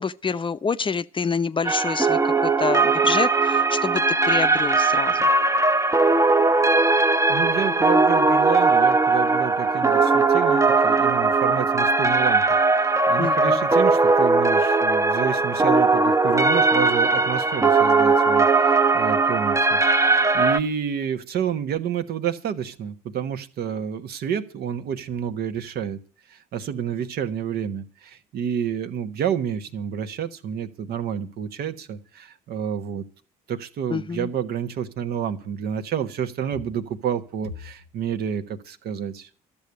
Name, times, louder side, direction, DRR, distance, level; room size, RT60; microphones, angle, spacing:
voice 1, 0.0-5.3 13.2-13.6 33.9-34.3, left 5 dB, 25° left, 0.7 m, -27 dB
sound 1, 1.6-20.6, right 3 dB, 15° right, 0.8 m, -19 dB
voice 2, 7.3-12.4 12.7-26.0 26.3-33.0 33.5-39.3, right 8 dB, 60° right, 1.2 m, -29 dB
13.0 x 7.2 x 9.6 m
hypercardioid pair, 55°, 19 cm